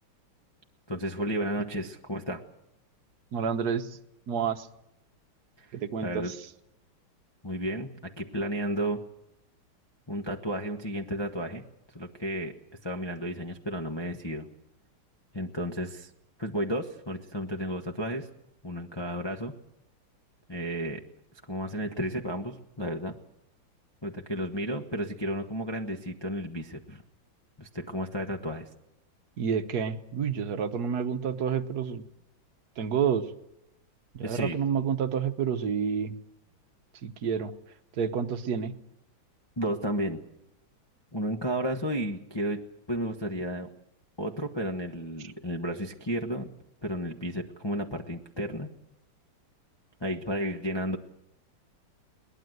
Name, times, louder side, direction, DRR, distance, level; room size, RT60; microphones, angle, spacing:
voice 1, 0.9-2.4 5.6-5.7 6.0-6.3 7.4-9.0 10.1-11.6 11.9-12.5 12.8-14.5 15.3-16.1 16.4-18.3 18.6-19.5 20.5-21.0 21.5-23.1 24.0-27.0 27.6-28.7 34.2-34.6 39.6-40.2 41.1-42.6 42.9-43.7 44.2-46.5 46.8-48.7 50.0-51.0, equal, 15° left, 0 dB, 0.9 m, -32 dB
voice 2, 3.3-3.9 4.3-4.7 5.7-6.4 29.4-32.0 32.8-33.2 34.1-36.2 37.0-37.5 38.0-38.7, right 7 dB, 55° right, 9 dB, 1.5 m, -29 dB
22.0 x 19.5 x 8.0 m, 0.84 s
omnidirectional pair, 2.3 m